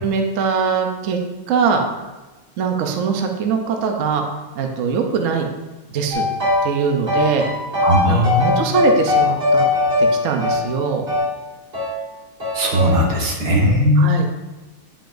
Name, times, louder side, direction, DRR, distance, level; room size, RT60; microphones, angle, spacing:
voice 1, 0.0-1.2 1.5-1.8 2.6-4.2 4.6-5.5 5.9-6.3 6.6-7.4 8.1-9.7 10.0-11.0 14.0-14.2, right 5 dB, 90° right, 3 dB, 0.7 m, -21 dB
sound 1, 6.1-6.8 7.1-11.3 11.7-12.0 12.4-13.0, left 3 dB, 30° right, 1.7 m, -20 dB
voice 2, 7.8-8.7 12.5-14.1, equal, 50° right, -2 dB, 1.8 m, -17 dB
8.6 x 5.7 x 2.6 m, 1.1 s
omnidirectional pair, 2.3 m